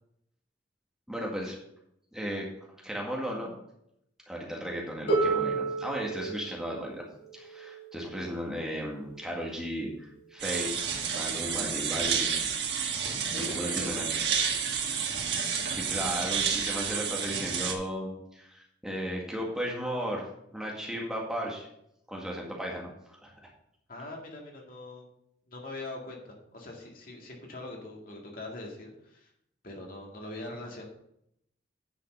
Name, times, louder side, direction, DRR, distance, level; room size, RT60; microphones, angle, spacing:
voice 1, 1.1-1.6 2.1-2.5 2.8-3.5 4.3-7.1 7.3-10.7 11.1-12.6 13.4-14.1 15.4-21.7 22.1-22.9 23.2-23.3, equal, 5° right, -2 dB, 1.8 m, -35 dB
Harp, 5.1-10.9 11.9-12.0, right 4 dB, 80° left, 3.9 m, -34 dB
sound 1, 10.4-17.7, right 7 dB, 75° right, 1.6 m, -30 dB
voice 2, 13.3-14.0 23.9-25.1 25.5-29.3 29.6-30.8, left 2 dB, 50° left, 0 dB, 2.1 m, -42 dB
9.8 x 5.8 x 5.5 m, 0.76 s
head